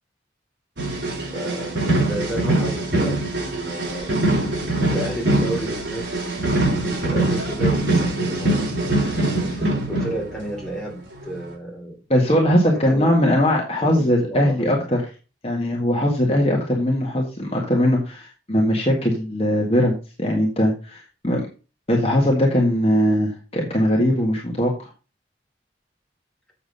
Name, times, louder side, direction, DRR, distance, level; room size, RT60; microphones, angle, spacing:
sound 1, 0.8-10.7 11.2-11.4, right 2 dB, 70° right, 4.1 m, -23 dB
voice 1, 1.2-4.1 4.8-6.1 6.7-12.0 12.7-13.1 13.8-14.8, right 1 dB, 5° left, -3 dB, 3.4 m, -32 dB
voice 2, 12.1-15.0 15.4-21.4 21.9-24.9, equal, 30° left, -1 dB, 1.7 m, -20 dB
7.5 x 7.1 x 5.4 m, 0.34 s
head